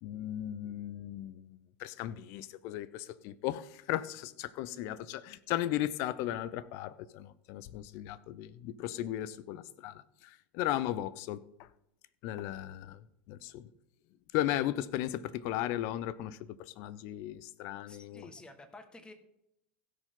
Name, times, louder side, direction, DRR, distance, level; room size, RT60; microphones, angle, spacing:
voice 1, 0.0-11.7 12.2-13.0 13.3-13.7 14.3-18.3, left 13 dB, 55° left, 17 dB, 0.7 m, -36 dB
voice 2, 17.6-19.1, left 2 dB, 15° left, 8 dB, 1.7 m, -52 dB
16.5 x 6.6 x 3.8 m, 0.82 s
hypercardioid pair, 80°, 6 cm